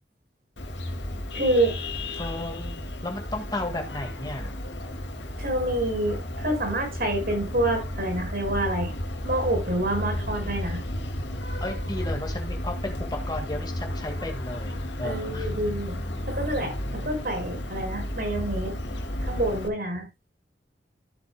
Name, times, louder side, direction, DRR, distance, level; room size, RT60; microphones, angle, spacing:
Vehicle horn car horn honking, 0.6-19.7, left 1 dB, 85° left, 2.2 m, -33 dB
voice 1, 1.3-1.8 5.4-8.9 9.2-10.8 15.0-15.9 16.3-18.7 19.2-20.1, right 1 dB, 55° right, 4 dB, 5.8 m, -27 dB
voice 2, 2.2-4.5 11.6-15.6, left 2 dB, 20° left, 4 dB, 1.8 m, -34 dB
14.5 x 8.5 x 2.2 m, 0.23 s
head